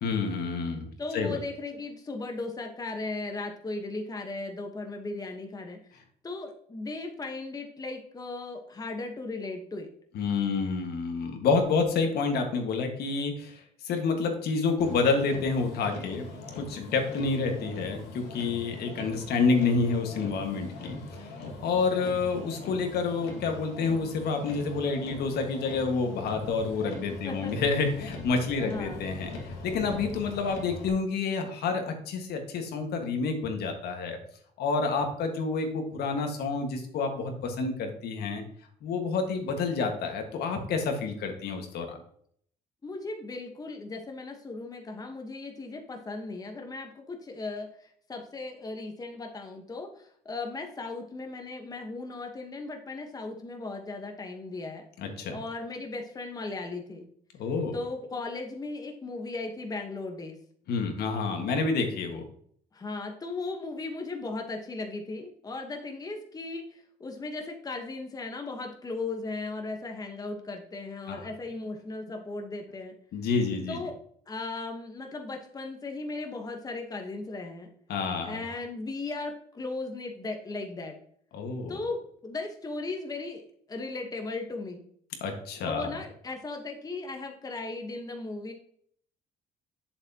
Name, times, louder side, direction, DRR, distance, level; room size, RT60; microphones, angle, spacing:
voice 1, 0.0-0.9 1.1-1.4 10.1-16.3 16.6-21.3 21.6-34.2 34.6-38.4 38.8-42.0 55.0-55.4 57.4-57.7 60.7-62.2 71.1-71.3 73.1-73.8 77.9-78.4 81.3-81.8 85.2-85.9, left 4 dB, 70° left, 4 dB, 1.7 m, -29 dB
voice 2, 1.0-5.8 6.2-9.9 27.2-27.5 28.6-29.1 42.8-54.8 55.3-57.1 57.7-60.4 62.7-72.9 73.7-74.0 74.3-77.7 78.2-81.0 81.7-83.4 83.7-84.8 85.6-88.5, left 3 dB, 20° left, 3 dB, 1.2 m, -37 dB
Motor vehicle (road), 14.8-30.9, left 2 dB, 90° left, 2.1 m, -42 dB
7.9 x 7.4 x 2.9 m, 0.63 s
cardioid pair, 110°, 17 cm